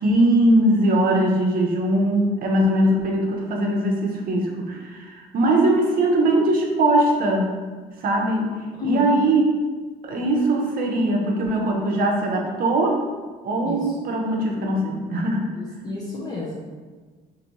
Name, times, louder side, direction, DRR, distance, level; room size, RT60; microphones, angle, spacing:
voice 1, 0.0-7.5 8.0-8.5 8.8-9.4 10.0-13.0 13.4-15.4, right 1 dB, 55° right, 1 dB, 0.7 m, -21 dB
voice 2, 8.8-9.2 13.6-14.0 15.6-16.5, left 3 dB, 25° left, -5 dB, 0.7 m, -30 dB
4.0 x 2.6 x 3.0 m, 1.4 s
cardioid pair, 110°, 17 cm